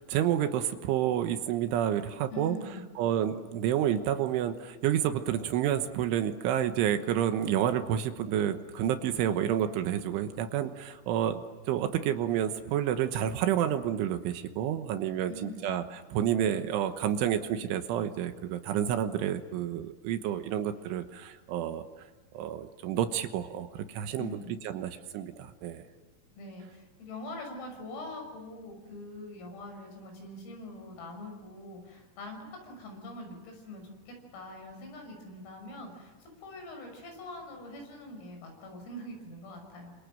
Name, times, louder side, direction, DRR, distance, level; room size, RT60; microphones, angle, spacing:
voice 1, 0.0-2.6 3.0-21.8 22.3-24.4 24.6-25.8, right 10 dB, 75° right, 8 dB, 3.4 m, -29 dB
voice 2, 2.3-2.9 15.3-15.8 24.2-24.6 26.4-40.0, left 2 dB, 80° left, 3 dB, 9.0 m, -43 dB
28.0 x 26.5 x 7.8 m, 1.2 s
omnidirectional pair, 5.9 m